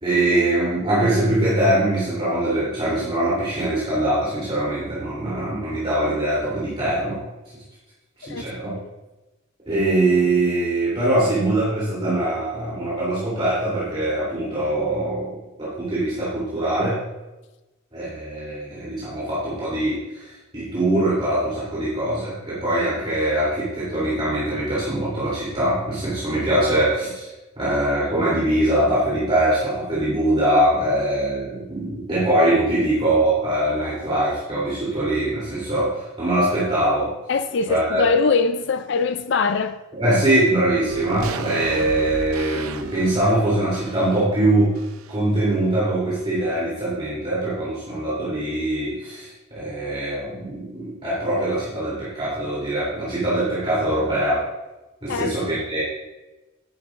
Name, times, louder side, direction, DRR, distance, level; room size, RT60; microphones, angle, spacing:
voice 1, 0.0-7.2 8.2-8.8 9.7-17.0 17.9-27.3 27.6-37.1 37.7-38.0 39.9-44.8 45.1-54.4 55.0-55.8, right 1 dB, 25° right, 3.1 m, -22 dB
voice 2, 37.3-39.8 55.1-55.4, left 4 dB, 55° left, 0.4 m, -22 dB
sound 1, 40.9-45.4 45.7-45.8, right 4 dB, 90° right, 0.6 m, -34 dB
11.0 x 11.0 x 2.5 m
head